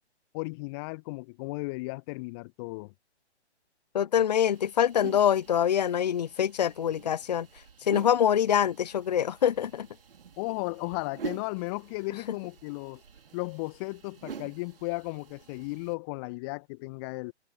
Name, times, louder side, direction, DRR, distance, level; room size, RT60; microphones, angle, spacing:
voice 1, 0.3-2.9 10.4-13.0 13.3-17.3, left 27 dB, 20° left, 1.5 m, -35 dB
voice 2, 3.9-7.5 7.9-9.9, left 9 dB, 40° left, 0.5 m, -25 dB
sound 1, 4.4-15.9, right 6 dB, 55° right, 3.1 m, -46 dB
Guitar, 10.4-14.4, left 1 dB, ahead, 5.7 m, -65 dB
figure-of-eight pair, 130°, 34 cm